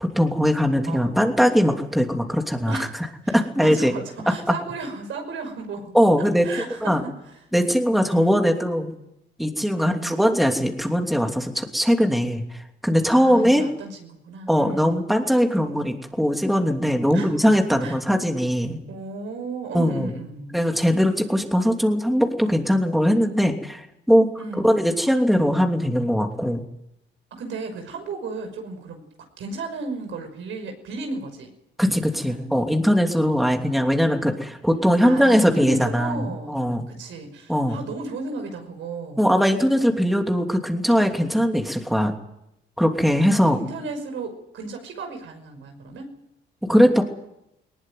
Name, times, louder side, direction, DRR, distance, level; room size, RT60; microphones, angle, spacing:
voice 1, 0.0-2.8 3.3-3.9 4.5-4.6 5.9-6.4 6.8-7.0 7.5-8.9 9.4-13.6 14.5-18.8 19.7-20.1 20.5-24.3 24.6-26.6 31.8-36.9 37.5-37.8 39.2-42.1 42.8-43.6 46.6-47.0, equal, ahead, 3 dB, 3.0 m, -20 dB
voice 2, 0.9-1.3 2.7-2.9 3.2-5.9 6.2-7.1 8.1-8.5 9.8-10.3 13.1-15.0 17.1-17.4 17.8-18.0 18.9-20.6 24.4-24.9 27.3-29.1 29.4-31.5 31.9-32.5 35.0-36.6 36.9-39.4 43.4-46.1, right 3 dB, 75° right, 5 dB, 5.8 m, -34 dB
19.5 x 19.5 x 9.4 m, 0.82 s
cardioid pair, 90°, 20 cm